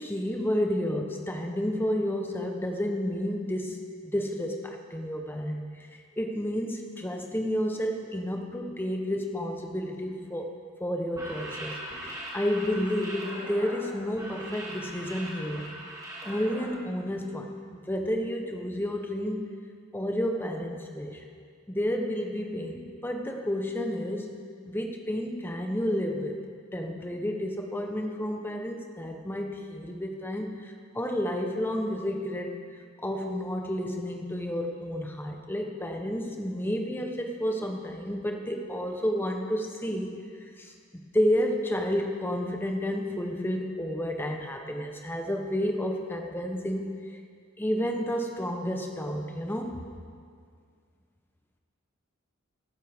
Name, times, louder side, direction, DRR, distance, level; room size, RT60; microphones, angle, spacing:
voice 1, 0.0-10.5 10.8-15.8 16.2-19.5 19.9-21.2 21.7-24.3 24.7-26.4 26.7-32.6 33.0-47.0 47.6-49.9, equal, 10° left, 3 dB, 0.8 m, -31 dB
sound 1, 11.0-16.7, right 1 dB, 15° right, 1.8 m, -40 dB
16.0 x 11.5 x 3.5 m, 2.2 s
head